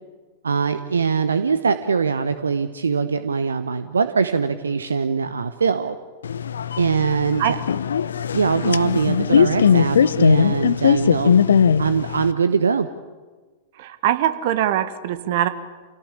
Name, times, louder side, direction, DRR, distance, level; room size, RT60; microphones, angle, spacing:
voice 1, 0.4-5.9 6.8-7.6 8.3-11.3 11.8-12.9, right 5 dB, 75° right, 11 dB, 0.9 m, -22 dB
sound 1, 6.2-12.3, left 7 dB, 70° left, 0.8 m, -19 dB
voice 2, 13.8-15.5, right 12 dB, 50° right, 11 dB, 1.7 m, -22 dB
28.0 x 17.5 x 8.7 m, 1.4 s
figure-of-eight pair, 95°, 0 cm